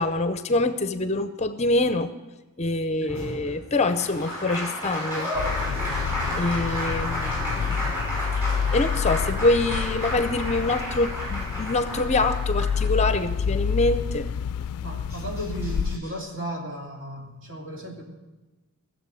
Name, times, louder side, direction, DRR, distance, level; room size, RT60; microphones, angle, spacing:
voice 1, 0.0-2.1 2.6-5.3 6.4-7.9 8.7-14.3, left 2 dB, 30° left, 11 dB, 0.5 m, -25 dB
Applause, 3.1-13.3 14.7-14.8 15.1-16.1, equal, 10° right, 5.5 m, -32 dB
sound 1, 5.3-16.0, left 7 dB, 85° left, 0.3 m, -28 dB
voice 2, 6.1-6.6 14.8-18.0, right 1 dB, 60° right, -1 dB, 2.8 m, -35 dB
17.0 x 7.3 x 7.6 m, 1.2 s
head